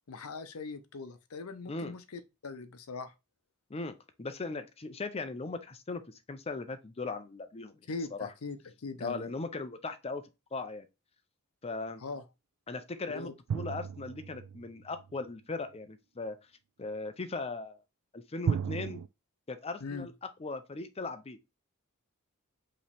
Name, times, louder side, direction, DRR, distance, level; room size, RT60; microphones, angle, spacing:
voice 1, 0.1-3.1 7.9-9.3 12.0-12.2 13.1-13.3 19.8-20.1, left 4 dB, 80° left, 0.6 m, -41 dB
voice 2, 3.7-8.3 9.0-10.2 10.5-10.9 11.6-12.0 12.7-16.4 16.8-17.8 18.1-19.0 19.5-21.4, left 3 dB, 30° left, 0.5 m, -38 dB
sound 1, 13.5-15.1 18.4-19.1, right 7 dB, 85° right, 0.3 m, -34 dB
4.9 x 3.1 x 3.4 m
head